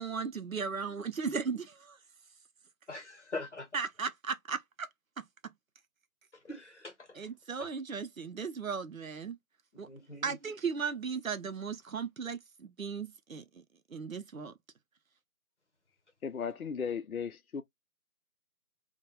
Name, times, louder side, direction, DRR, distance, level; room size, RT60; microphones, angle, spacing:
voice 1, 0.0-2.0 3.7-4.9 5.2-5.3 7.1-9.4 9.8-9.9 10.2-13.6 13.9-14.5, right 5 dB, 60° right, 0.6 m, -36 dB
voice 2, 2.9-3.7 6.4-7.2 9.7-10.3, left 2 dB, 50° left, 0.9 m, -42 dB
voice 3, 16.2-17.6, left 6 dB, 70° left, 0.5 m, -36 dB
2.2 x 2.2 x 2.9 m
figure-of-eight pair, 165°, 45 cm